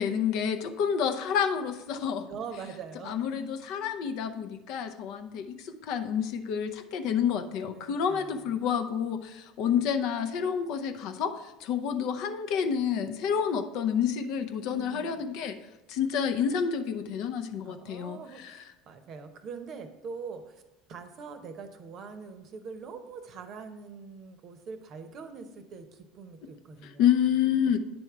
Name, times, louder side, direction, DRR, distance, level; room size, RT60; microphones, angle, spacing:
voice 1, 0.0-2.3 3.1-11.3 11.6-15.5 15.9-18.6 26.8-27.8, left 8 dB, 60° left, 7 dB, 0.6 m, -29 dB
voice 2, 2.3-3.6 7.7-8.6 14.6-15.2 17.6-20.6 20.9-27.1, right 5 dB, 50° right, 8 dB, 0.8 m, -43 dB
9.3 x 3.5 x 4.6 m, 0.99 s
hypercardioid pair, 75°, 0 cm